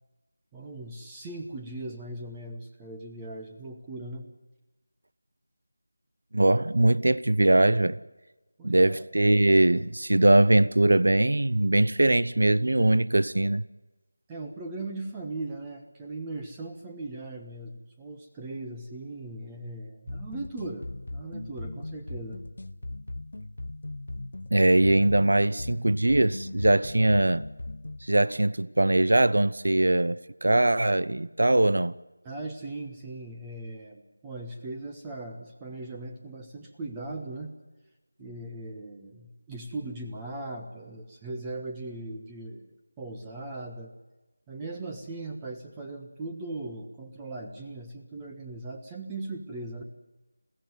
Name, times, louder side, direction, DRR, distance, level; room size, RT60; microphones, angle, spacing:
voice 1, 0.5-4.2 8.6-9.0 14.3-22.4 32.2-37.5 38.2-43.9 44.5-49.8, right 2 dB, 10° right, 1.2 m, -39 dB
voice 2, 6.3-8.0 8.6-13.6 24.5-27.4 28.0-32.0, right 1 dB, 65° right, 0.7 m, -21 dB
sound 1, 20.1-28.1, left 2 dB, 65° left, 0.7 m, -39 dB
22.0 x 16.0 x 9.6 m
figure-of-eight pair, 165°, 0 cm